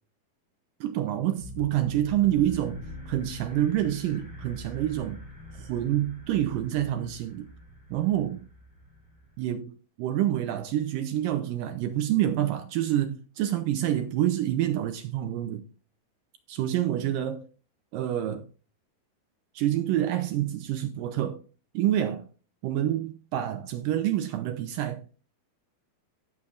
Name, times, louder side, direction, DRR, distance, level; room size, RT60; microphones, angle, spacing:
voice 1, 0.8-2.8 3.1-5.2 5.6-7.5 7.9-8.4 9.4-15.7 16.5-17.5 17.9-18.5 19.6-21.4 21.7-22.3 22.6-25.2, right 12 dB, 75° right, 2.1 m, -27 dB
sound 1, 1.4-9.5, equal, 10° right, 4.2 m, -44 dB
16.5 x 6.8 x 2.5 m
omnidirectional pair, 4.5 m